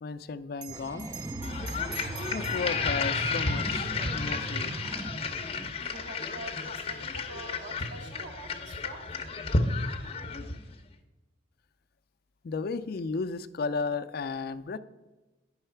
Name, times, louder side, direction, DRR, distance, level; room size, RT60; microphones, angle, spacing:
voice 1, 0.0-1.1 2.3-4.7 12.4-14.8, left 4 dB, 55° left, 0.4 m, -34 dB
Bell, 0.5-5.4, right 8 dB, 50° right, 0.7 m, -47 dB
sound 1, 0.7-5.7, right 2 dB, 15° right, 0.3 m, -38 dB
sound 2, 1.4-10.7, left 4 dB, 35° left, 0.7 m, -32 dB
voice 2, 5.9-9.2, right 1 dB, 75° right, 1.6 m, -45 dB
9.7 x 5.6 x 4.5 m
head